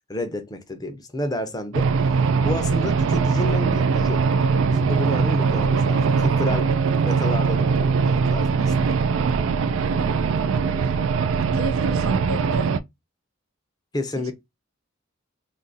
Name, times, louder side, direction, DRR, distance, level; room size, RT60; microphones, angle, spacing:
voice 1, 0.1-1.9 2.4-4.2 4.7-6.7 7.0-9.0 13.9-14.3, left 1 dB, 20° left, 0.5 m, -30 dB
sound 1, 1.7-12.8, right 5 dB, 65° right, 0.3 m, -21 dB
voice 2, 9.7-10.5 11.5-12.7 14.2-14.3, right 3 dB, 85° right, 0.7 m, -33 dB
2.6 x 2.5 x 3.9 m
head